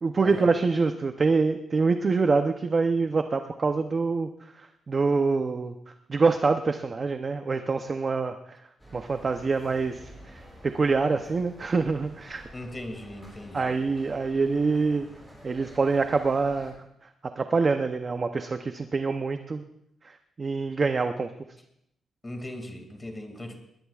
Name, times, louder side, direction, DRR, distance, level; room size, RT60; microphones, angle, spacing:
voice 1, 0.0-4.3 4.6-5.7 6.1-8.6 8.9-12.4 13.5-15.1 15.4-16.7 17.4-19.6 20.0-21.3, right 4 dB, 30° right, 7 dB, 0.6 m, -25 dB
sound 1, 8.8-16.7, equal, ahead, 7.1 m, -49 dB
voice 2, 12.5-13.7 22.2-23.6, left 1 dB, 15° left, 4 dB, 2.2 m, -38 dB
21.0 x 19.5 x 2.4 m, 0.79 s
wide cardioid pair, 165°, 0 cm